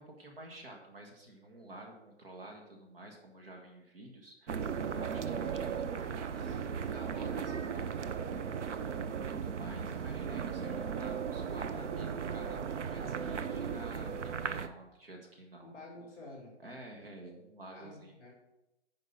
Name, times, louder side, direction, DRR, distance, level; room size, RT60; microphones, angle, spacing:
voice 1, 0.0-4.6 4.9-6.6 6.9-7.9 9.3-15.8 16.6-18.1, right 1 dB, 55° right, 1 dB, 1.7 m, -50 dB
sound 1, 4.5-14.7, right 6 dB, 80° right, 0.8 m, -36 dB
voice 2, 15.6-16.5 17.7-18.3, left 2 dB, 5° left, -3 dB, 2.5 m, -50 dB
9.6 x 5.2 x 5.6 m, 0.93 s
hypercardioid pair, 180°, 35 cm